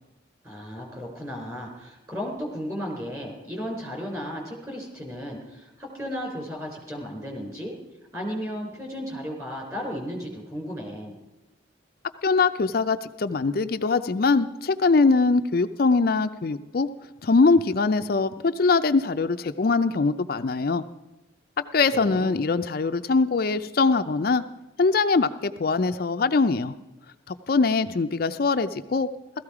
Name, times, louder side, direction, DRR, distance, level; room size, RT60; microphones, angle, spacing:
voice 1, 0.4-7.8 8.1-11.2 21.9-22.4, equal, 15° right, 0 dB, 3.7 m, -34 dB
voice 2, 12.2-16.9 17.2-20.8 21.6-24.4 24.8-26.7 27.3-29.1, left 4 dB, 50° left, 9 dB, 0.4 m, -22 dB
16.5 x 13.5 x 4.8 m, 1.0 s
head